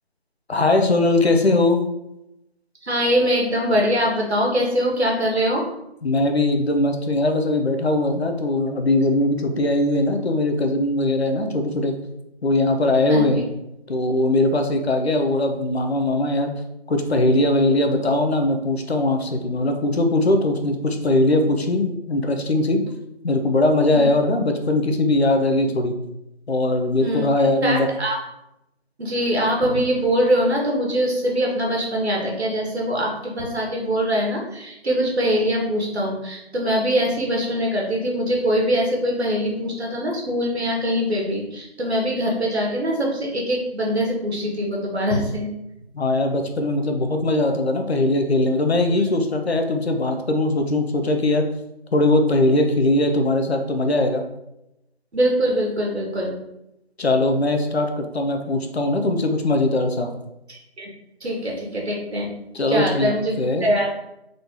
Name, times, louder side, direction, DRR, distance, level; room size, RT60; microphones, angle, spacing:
voice 1, 0.5-1.8 6.0-12.0 12.4-13.4 13.9-16.5 16.9-22.8 23.2-25.9 26.5-27.9 45.9-51.5 51.9-54.2 57.0-60.1 62.5-63.1 63.4-63.7, left 2 dB, 75° left, 5 dB, 0.8 m, -20 dB
voice 2, 2.8-5.6 13.1-13.2 23.9-24.0 27.0-27.3 27.6-28.2 29.0-45.5 49.0-49.1 55.1-56.3 60.5-60.9 61.2-62.3 62.7-63.9, equal, 75° right, -1 dB, 1.4 m, -23 dB
3.8 x 2.9 x 3.6 m, 0.87 s
figure-of-eight pair, 175°, 32 cm